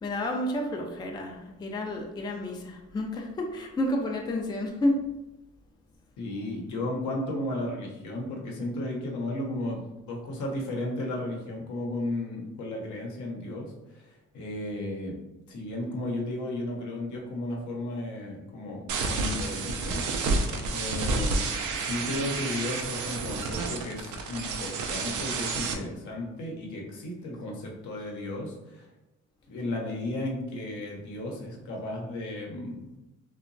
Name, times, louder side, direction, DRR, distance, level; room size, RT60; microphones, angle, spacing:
voice 1, 0.0-5.1, left 1 dB, 15° left, 2 dB, 0.3 m, -30 dB
voice 2, 6.2-15.2 15.5-20.1 20.7-21.4 21.8-28.9 29.5-32.9, left 1 dB, 75° left, 0 dB, 0.8 m, -34 dB
sound 1, 18.9-25.7, right 3 dB, 80° right, 0.5 m, -30 dB
2.8 x 2.2 x 2.5 m, 0.97 s
cardioid pair, 90°, 30 cm